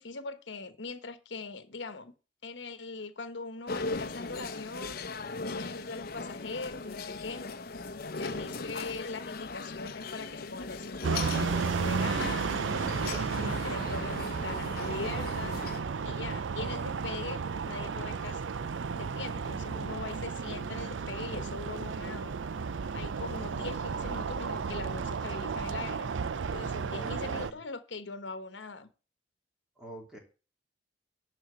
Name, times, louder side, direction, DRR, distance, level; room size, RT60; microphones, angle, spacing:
voice 1, 0.0-2.1 2.4-5.0 5.4-7.5 8.1-12.5 13.0-15.6 16.0-18.4 18.9-22.3 22.9-26.1 26.5-28.9, left 3 dB, 75° left, 1.2 m, -41 dB
sound 1, 3.7-15.8, left 3 dB, 55° left, 0.8 m, -39 dB
voice 2, 8.2-8.6 26.8-27.6 29.8-30.2, right 1 dB, 5° right, 3.1 m, -47 dB
sound 2, 11.0-27.5, right 5 dB, 90° right, 0.5 m, -33 dB
11.5 x 4.3 x 8.1 m
head